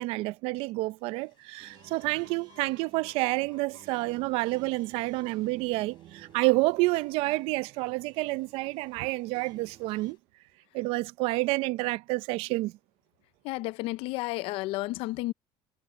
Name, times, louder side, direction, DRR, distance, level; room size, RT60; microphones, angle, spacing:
voice 1, 0.0-10.2 10.7-12.7, right 22 dB, 65° right, 0.5 m, -29 dB
sound 1, 1.0-10.2, left 13 dB, 50° left, 6.0 m, -65 dB
sound 2, 1.6-10.1, right 12 dB, 45° right, 1.2 m, -54 dB
voice 2, 13.4-15.3, left 19 dB, 65° left, 0.5 m, -32 dB
cardioid pair, 155°, 10 cm